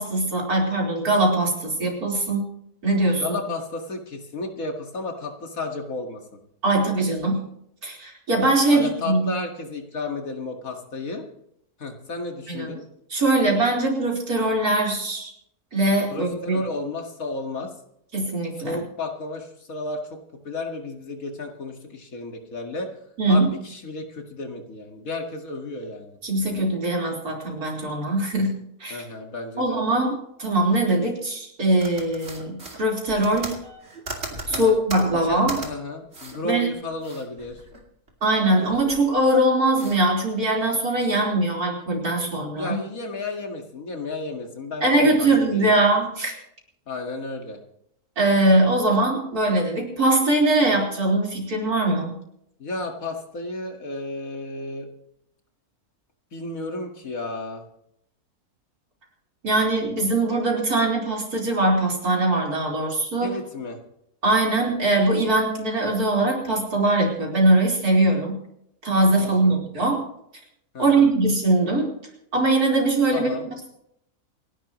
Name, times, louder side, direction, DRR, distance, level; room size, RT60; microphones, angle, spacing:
voice 1, 0.0-2.4 2.8-3.4 6.6-7.4 7.8-9.3 12.5-12.7 13.1-15.3 15.7-16.6 18.1-18.8 23.2-23.5 26.2-29.0 29.6-33.5 34.5-35.6 36.4-36.7 38.2-42.8 44.8-46.3 48.2-52.2 59.4-63.3 64.2-68.4 68.8-70.0 70.8-71.9 72.3-73.4, right 2 dB, 75° right, -1 dB, 4.9 m, -21 dB
voice 2, 3.2-6.4 8.7-11.2 11.8-12.8 16.1-17.7 18.6-22.9 23.3-26.2 28.9-29.8 34.5-34.8 35.1-37.6 42.5-45.8 46.9-47.6 52.6-54.9 56.3-57.6 63.2-63.8 69.2-69.6 70.7-71.1 73.1-73.5, left 2 dB, 65° left, 3 dB, 2.4 m, -33 dB
sound 1, 31.8-35.7 36.1-36.4 36.7-38.1 38.4-39.2 39.7-40.0, right 2 dB, 45° right, 2.9 m, -37 dB
28.5 x 11.5 x 3.1 m, 0.74 s
omnidirectional pair, 1.6 m